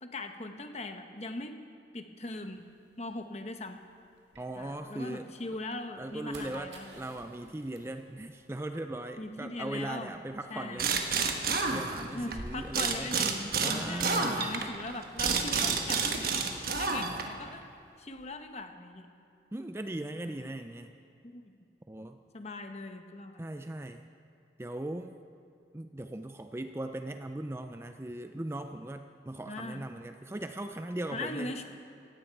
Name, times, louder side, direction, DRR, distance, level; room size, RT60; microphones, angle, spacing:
voice 1, 0.0-1.6 1.9-2.6 3.0-3.8 4.6-7.0 9.2-10.2 10.5-10.9 12.1-16.5 16.8-17.6 18.0-19.1 20.3-20.4 21.2-21.5 22.3-23.4 29.4-29.8 31.1-31.7, left 2 dB, 35° left, 6 dB, 1.0 m, -40 dB
sound 1, 2.3-5.1 5.5-17.3 17.5-18.4, right 1 dB, 80° right, 2.1 m, -51 dB
voice 2, 4.4-5.3 6.0-10.9 11.5-13.1 13.6-14.5 19.5-20.9 21.9-22.2 23.4-24.0 24.6-25.1 25.7-31.5, right 1 dB, 15° right, 7 dB, 0.4 m, -39 dB
sound 2, 10.8-12.4 12.7-17.4, right 5 dB, 55° right, 1.2 m, -29 dB
17.0 x 15.5 x 4.7 m, 2.6 s
head